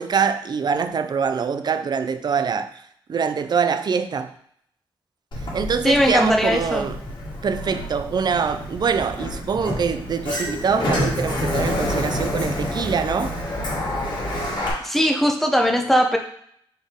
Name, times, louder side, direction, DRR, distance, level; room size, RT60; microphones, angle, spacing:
voice 1, 0.0-2.7 3.1-4.3 5.5-7.0 7.4-13.3, right 6 dB, 50° right, 9 dB, 0.4 m, -24 dB
Sliding door, 5.3-14.7, left 1 dB, 55° left, 1.5 m, -28 dB
voice 2, 5.8-6.9 14.8-16.2, equal, ahead, 4 dB, 0.7 m, -19 dB
4.2 x 3.4 x 3.6 m, 0.67 s
cardioid pair, 80°, 9 cm